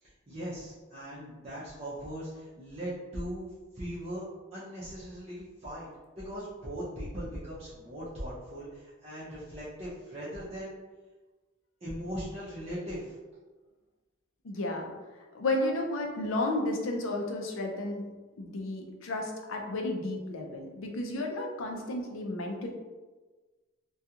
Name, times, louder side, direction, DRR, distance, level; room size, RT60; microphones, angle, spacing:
voice 1, 0.0-3.5 3.7-4.2 4.5-5.9 6.2-10.8 11.8-13.1, equal, 30° right, -10 dB, 0.6 m, -39 dB
voice 2, 14.4-14.9 15.3-18.0 18.4-22.7, left 2 dB, 80° left, 1 dB, 0.5 m, -32 dB
2.4 x 2.3 x 2.8 m, 1.3 s
head